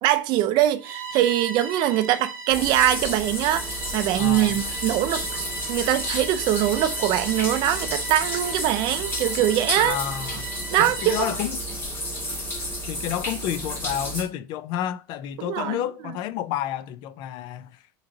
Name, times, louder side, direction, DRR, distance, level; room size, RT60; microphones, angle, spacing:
voice 1, 0.0-10.0 10.7-11.3 15.4-15.8, right 13 dB, 40° right, 0.5 m, -23 dB
Bowed string instrument, 0.8-11.4, right 4 dB, 20° right, 1.2 m, -38 dB
sound 1, 2.5-14.2, equal, 15° left, 2.0 m, -31 dB
voice 2, 4.1-4.6 9.8-10.5 10.8-11.6 12.9-17.7, left 11 dB, 40° left, 0.4 m, -30 dB
5.2 x 3.0 x 2.7 m
supercardioid pair, 160°, 11 cm